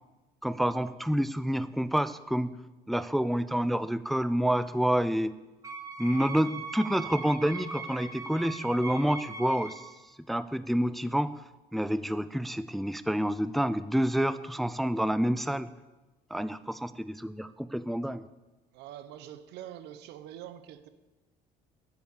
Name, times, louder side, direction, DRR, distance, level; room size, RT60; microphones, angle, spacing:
voice 1, 0.4-2.6 2.9-5.4 6.0-9.9 10.3-11.3 11.7-15.7 16.3-18.2, equal, ahead, 14 dB, 0.4 m, -28 dB
Wind instrument woodwind instrument, 5.6-9.9, right 4 dB, 20° right, 2.4 m, -41 dB
voice 2, 18.7-20.9, right 11 dB, 85° right, 12 dB, 0.9 m, -45 dB
9.9 x 8.1 x 8.4 m, 1.1 s
cardioid pair, 110°, 17 cm